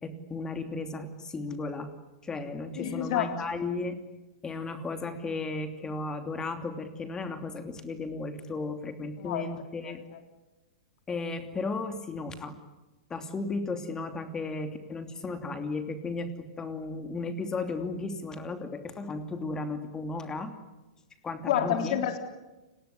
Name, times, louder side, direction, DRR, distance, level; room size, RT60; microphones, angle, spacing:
voice 1, 0.0-1.9 2.2-4.0 4.4-10.0 11.1-12.6 13.1-20.5 21.2-22.0, left 3 dB, 15° left, 8 dB, 2.9 m, -35 dB
voice 2, 2.8-3.4 9.2-9.5 9.8-10.2 21.4-22.2, left 10 dB, 55° left, 7 dB, 3.7 m, -29 dB
30.0 x 20.0 x 9.7 m, 1.1 s
figure-of-eight pair, 105°, 4 cm